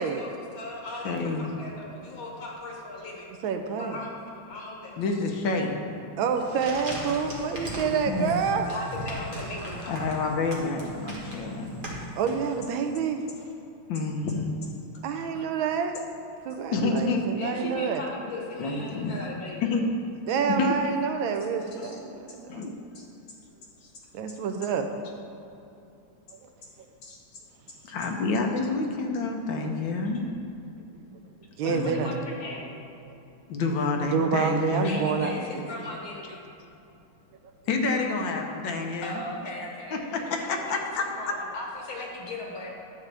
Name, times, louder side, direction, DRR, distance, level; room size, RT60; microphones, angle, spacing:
voice 1, 0.0-3.3 3.8-4.1 4.5-5.0 8.6-10.1 15.1-15.5 17.4-19.7 21.8-21.9 22.9-23.1 23.8-23.9 27.0-27.2 30.1-30.2 31.6-32.7 34.8-36.5 39.0-40.6 41.0-42.7, left 2 dB, 85° left, -2 dB, 2.3 m, -38 dB
voice 2, 1.0-1.6 5.0-5.9 8.1-8.4 9.9-11.7 13.9-14.7 16.7-17.3 18.6-19.2 19.6-19.8 20.5-20.7 22.5-22.7 27.8-30.3 31.7-32.1 33.5-35.1 37.7-39.2 39.9-41.0, left 3 dB, 70° left, 2 dB, 1.5 m, -28 dB
voice 3, 3.4-4.0 6.2-8.7 12.2-13.2 15.0-16.0 16.4-18.0 20.3-22.7 24.1-25.1 26.4-26.5 28.4-28.5 31.6-32.1 34.1-35.7, right 6 dB, 85° right, 6 dB, 1.4 m, -28 dB
sound 1, 6.3-12.8, equal, 30° right, 1.4 m, -38 dB
10.5 x 7.3 x 3.4 m, 2.8 s
omnidirectional pair, 2.2 m